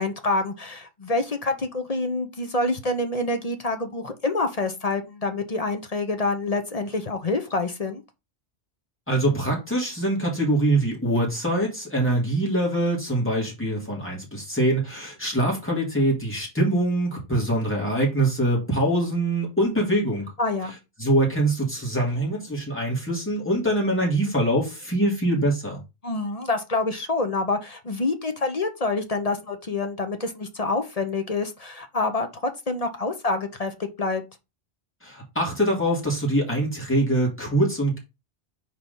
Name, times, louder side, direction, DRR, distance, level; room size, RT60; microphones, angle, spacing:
voice 1, 0.0-8.0 20.4-20.7 26.0-32.3 32.7-34.2, left 3 dB, 35° left, 0.9 m, -27 dB
voice 2, 9.1-20.2 21.0-25.8 35.0-38.0, right 1 dB, 10° left, 3.0 m, -24 dB
4.7 x 4.3 x 5.3 m
omnidirectional pair, 1.2 m